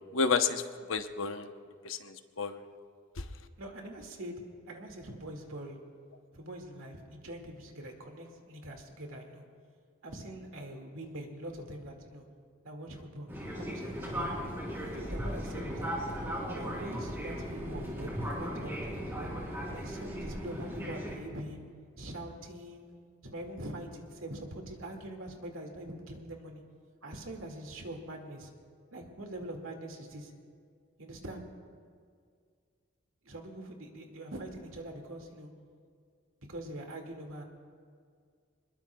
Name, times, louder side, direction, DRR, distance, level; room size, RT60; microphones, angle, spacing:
voice 1, 0.1-1.5 1.8-2.6 3.2-3.3, left 5 dB, 75° left, 8 dB, 0.9 m, -31 dB
voice 2, 3.6-5.8 6.3-9.4 10.0-12.3 12.6-13.3 13.6-14.4 14.9-15.9 16.5-19.3 19.7-21.7 22.0-22.9 23.2-26.6 27.0-28.5 28.9-30.3 31.0-31.4 33.2-35.5 36.5-37.4, right 1 dB, 80° right, 2 dB, 2.1 m, -43 dB
Fixed-wing aircraft airplane, 13.3-21.1, equal, 10° right, 3.2 m, -37 dB
25.0 x 21.5 x 2.3 m, 2.1 s
head